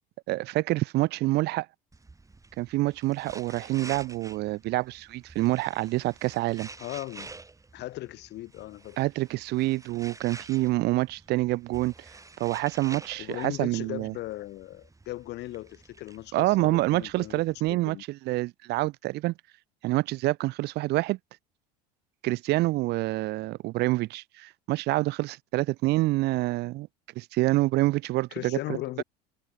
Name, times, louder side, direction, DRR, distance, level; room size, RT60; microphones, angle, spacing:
voice 1, 0.3-1.7 2.6-6.7 9.0-11.9 12.4-14.1 16.3-19.3 19.8-21.2 22.2-26.9 27.2-28.6 29.0-29.1, right 18 dB, 50° right, 0.6 m, -27 dB
sound 1, 1.9-17.7, right 3 dB, 15° right, 6.7 m, -49 dB
voice 2, 6.8-7.3 7.7-9.0 13.2-17.4 17.7-18.0 28.3-29.0, left 16 dB, 55° left, 1.4 m, -38 dB
hypercardioid pair, 85°, 21 cm